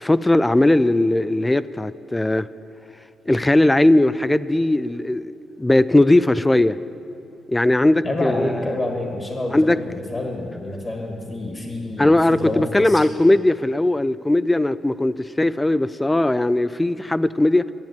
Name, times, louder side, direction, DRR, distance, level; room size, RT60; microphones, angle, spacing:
voice 1, 0.0-2.5 3.3-5.3 5.6-6.8 7.5-8.6 9.5-9.8 12.0-17.7, left 1 dB, 15° left, 16 dB, 0.3 m, -18 dB
voice 2, 8.0-13.1, left 2 dB, 30° left, 1 dB, 1.7 m, -28 dB
10.5 x 7.1 x 9.2 m, 2.7 s
cardioid pair, 70°, 0 cm